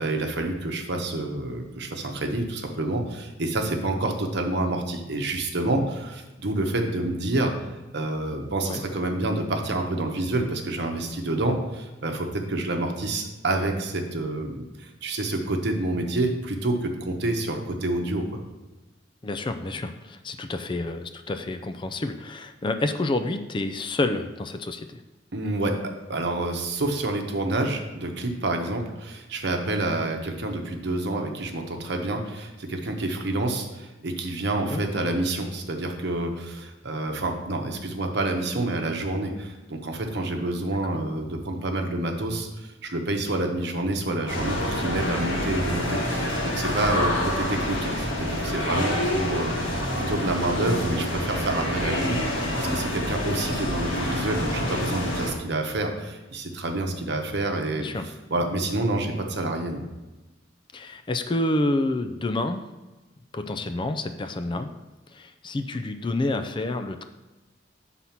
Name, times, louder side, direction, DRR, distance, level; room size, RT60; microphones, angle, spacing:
voice 1, 0.0-7.5 7.9-18.4 25.3-25.8 26.1-49.8 50.1-59.8, right 2 dB, 60° right, 4 dB, 1.0 m, -28 dB
voice 2, 19.2-25.0 34.5-34.8 40.9-41.0 57.8-58.1 60.7-62.6 63.3-64.7 65.1-67.0, left 2 dB, 25° left, 8 dB, 0.4 m, -28 dB
sound 1, 44.3-55.3, left 1 dB, 85° left, 1.8 m, -27 dB
7.5 x 4.1 x 5.8 m, 1.1 s
head